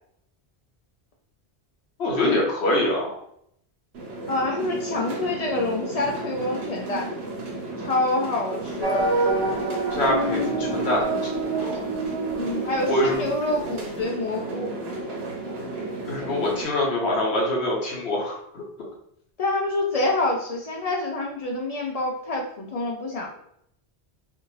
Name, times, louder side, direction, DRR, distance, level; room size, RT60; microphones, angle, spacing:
voice 1, 2.0-3.1 9.9-11.8 12.9-13.2 16.1-18.6, left 1 dB, 90° left, -3 dB, 1.1 m, -24 dB
sound 1, 3.9-16.7, right 2 dB, 85° right, 1.0 m, -33 dB
voice 2, 4.3-7.1 7.8-9.1 12.3-14.7 19.4-23.3, left 2 dB, 55° left, -1 dB, 0.4 m, -27 dB
sound 2, 8.8-13.7, right 2 dB, 45° right, 0.5 m, -27 dB
2.5 x 2.4 x 3.0 m, 0.72 s
omnidirectional pair, 1.1 m